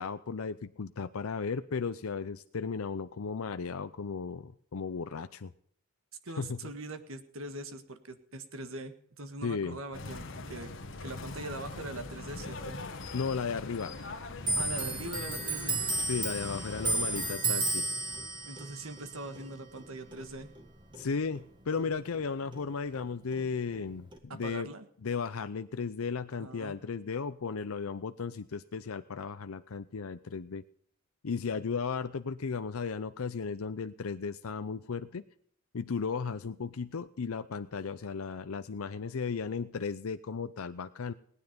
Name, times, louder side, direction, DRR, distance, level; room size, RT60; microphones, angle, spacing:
voice 1, 0.0-5.5 6.4-6.6 9.4-9.8 13.1-13.9 16.1-17.9 21.0-24.7 25.0-30.6 31.2-35.2 35.7-41.1, left 5 dB, 85° left, 10 dB, 0.6 m, -35 dB
voice 2, 6.2-10.7 11.0-12.8 14.5-15.8 18.4-20.5 24.3-24.9 26.4-26.8, right 2 dB, 75° right, 9 dB, 1.7 m, -42 dB
sound 1, 9.9-17.4, left 2 dB, 65° left, 1.5 m, -42 dB
Clock, 14.4-21.5 21.7-23.1 23.3-24.2, right 2 dB, 20° right, 1.9 m, -34 dB
18.5 x 10.0 x 5.2 m, 0.66 s
head